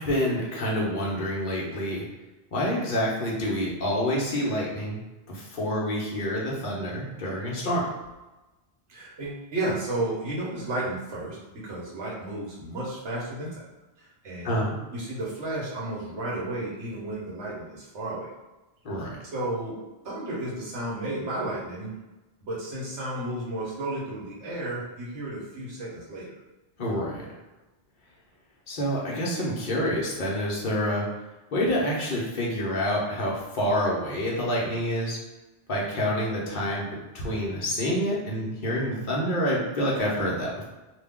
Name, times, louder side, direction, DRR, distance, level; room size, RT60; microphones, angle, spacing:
voice 1, 0.0-2.1 2.5-5.0 5.3-7.9 14.4-14.7 18.8-19.2 26.8-27.3 28.7-31.1 31.5-35.2 35.7-36.9 37.1-40.6, equal, 50° left, -4 dB, 1.0 m, -27 dB
voice 2, 8.9-11.4 11.6-13.5 14.2-14.6 14.9-18.3 19.3-19.8 20.0-21.9 22.4-26.3, right 1 dB, 80° right, -5 dB, 1.3 m, -32 dB
3.0 x 2.3 x 3.5 m, 1.1 s
omnidirectional pair, 1.2 m